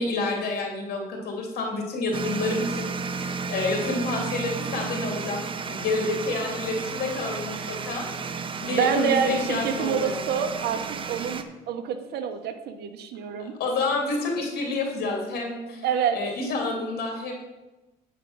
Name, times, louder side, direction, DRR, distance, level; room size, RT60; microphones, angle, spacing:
voice 1, 0.0-8.1 8.6-10.1 13.4-17.3, left 3 dB, 65° left, 1 dB, 2.8 m, -29 dB
sound 1, 2.1-11.4, right 5 dB, 30° right, 0.7 m, -33 dB
voice 2, 8.6-10.8 11.1-13.5 15.8-16.2, right 7 dB, 75° right, 7 dB, 1.0 m, -27 dB
9.0 x 5.1 x 6.0 m, 1.1 s
cardioid pair, 110°, 17 cm